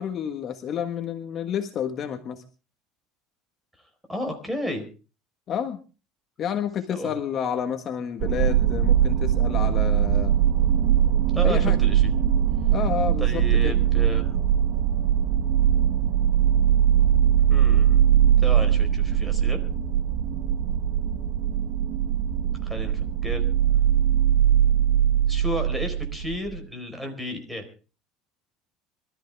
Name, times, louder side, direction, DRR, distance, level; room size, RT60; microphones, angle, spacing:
voice 1, 0.0-2.4 5.5-5.8 6.4-10.3 11.4-11.8 12.7-13.7, left 8 dB, 40° left, 7 dB, 1.5 m, -30 dB
voice 2, 4.1-4.8 6.9-7.1 11.3-12.1 13.2-14.2 17.5-18.0 18.4-19.6 22.6-23.4 25.3-27.6, left 1 dB, ahead, 5 dB, 4.4 m, -32 dB
sound 1, 8.2-26.6, right 9 dB, 60° right, 1.3 m, -21 dB
24.0 x 13.5 x 3.5 m, 0.35 s
cardioid pair, 145°, 0 cm